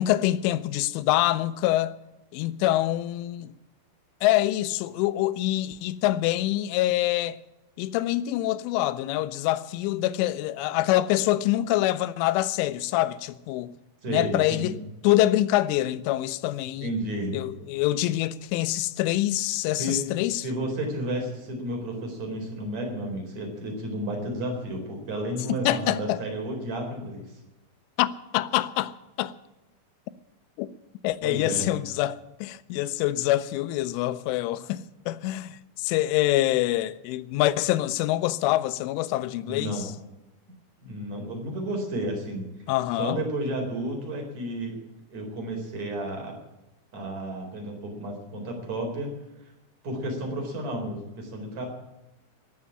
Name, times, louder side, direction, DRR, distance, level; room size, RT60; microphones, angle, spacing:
voice 1, 0.0-2.0 2.3-3.5 4.2-7.4 7.8-13.7 14.1-14.8 15.0-16.9 17.3-20.4 25.5-26.2 28.0-29.3 30.6-30.7 31.0-39.9 42.7-43.2, left 15 dB, 85° left, 3.2 m, -25 dB
voice 2, 14.0-14.8 16.8-17.3 19.8-20.0 20.4-27.2 31.2-31.7 39.4-39.9 40.8-42.5 42.9-44.8 45.1-46.3 46.9-49.2 49.8-51.7, right 1 dB, 35° right, 5.1 m, -32 dB
18.0 x 7.5 x 9.9 m
omnidirectional pair, 5.7 m